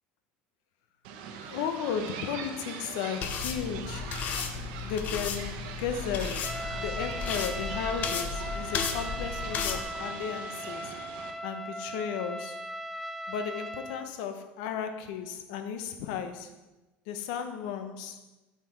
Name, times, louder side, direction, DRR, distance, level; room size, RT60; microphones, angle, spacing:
sound 1, 1.0-11.3, right 6 dB, 80° right, 1.1 m, -42 dB
voice 1, 1.5-4.1 4.8-10.9 11.4-12.6 13.3-16.5 17.1-18.2, left 7 dB, 75° left, 8 dB, 0.9 m, -35 dB
sound 2, 3.2-9.8, left 6 dB, 40° left, 0.7 m, -34 dB
Trumpet, 6.4-14.1, equal, 5° left, 0.4 m, -38 dB
8.2 x 6.1 x 4.9 m, 1.1 s
cardioid pair, 160°, 4 cm